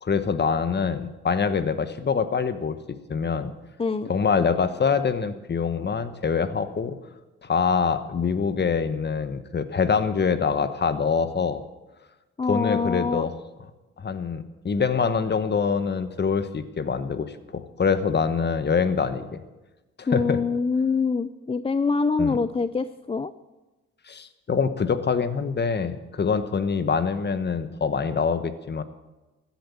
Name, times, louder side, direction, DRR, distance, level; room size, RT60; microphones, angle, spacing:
voice 1, 0.0-2.8 3.1-3.5 4.1-7.0 7.4-11.6 12.5-13.3 14.0-19.3 20.0-20.4 22.2-22.4 24.1-28.8, left 5 dB, 35° left, 12 dB, 1.2 m, -25 dB
voice 2, 3.8-4.1 12.4-13.2 20.1-23.3, left 4 dB, 20° left, 13 dB, 0.5 m, -25 dB
15.5 x 10.5 x 7.1 m, 1.1 s
cardioid pair, 90°, 30 cm